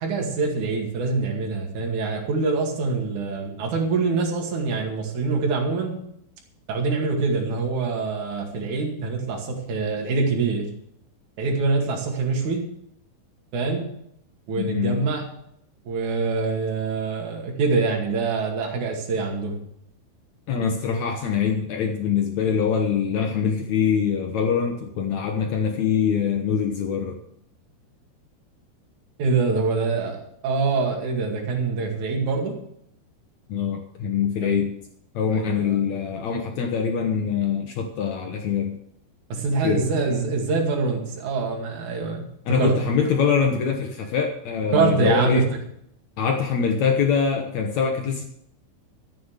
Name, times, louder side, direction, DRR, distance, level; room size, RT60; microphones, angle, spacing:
voice 1, 0.0-6.0 6.7-10.7 11.4-12.6 13.5-13.9 14.5-15.2 15.9-19.6 29.2-32.6 34.4-34.6 35.3-35.7 39.3-42.7 44.7-45.4, right 4 dB, 55° right, 0 dB, 3.4 m, -24 dB
voice 2, 14.6-15.0 20.5-27.2 33.5-34.7 35.2-38.8 39.6-39.9 42.5-45.5 46.2-48.2, left 7 dB, 75° left, 4 dB, 1.7 m, -24 dB
13.5 x 7.7 x 6.6 m, 0.73 s
omnidirectional pair, 4.7 m